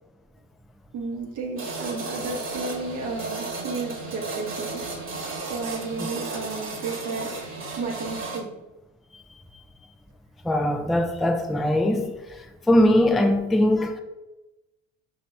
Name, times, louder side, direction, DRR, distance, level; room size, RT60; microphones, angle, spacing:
voice 1, 0.9-4.8 5.5-7.3 7.8-8.5, right 3 dB, 60° right, 1.0 m, -32 dB
sound 1, 1.6-8.4, right 3 dB, 40° right, 1.3 m, -34 dB
voice 2, 10.4-12.1 12.7-14.0, left 1 dB, ahead, 0.3 m, -21 dB
5.3 x 2.9 x 3.1 m
supercardioid pair, 90°, 33 cm